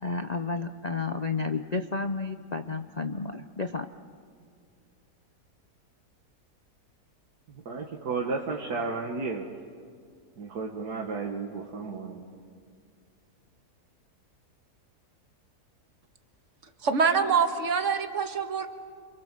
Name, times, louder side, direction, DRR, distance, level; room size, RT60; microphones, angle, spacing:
voice 1, 0.0-3.9, left 4 dB, 45° left, 8 dB, 0.5 m, -31 dB
voice 2, 7.5-9.5 10.4-12.2, right 4 dB, 80° right, 1 dB, 2.0 m, -33 dB
voice 3, 16.8-18.7, right 6 dB, 50° right, 7 dB, 1.8 m, -25 dB
28.5 x 23.0 x 7.5 m, 2.1 s
omnidirectional pair, 1.7 m